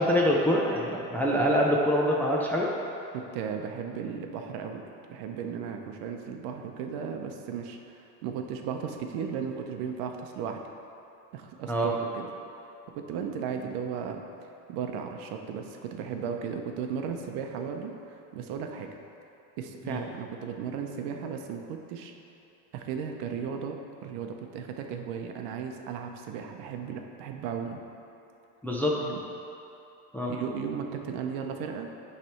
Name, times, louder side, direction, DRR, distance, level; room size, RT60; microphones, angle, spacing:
voice 1, 0.0-2.7 11.7-11.9 19.8-20.0 28.6-29.0 30.1-30.3, equal, 5° left, -4 dB, 0.4 m, -25 dB
voice 2, 3.1-10.6 11.3-12.3 12.9-14.2 14.7-18.9 19.6-22.1 22.7-27.8 28.9-29.2 30.3-31.9, right 7 dB, 65° right, 4 dB, 0.8 m, -35 dB
9.3 x 3.4 x 5.7 m, 3.0 s
supercardioid pair, 135°, 43 cm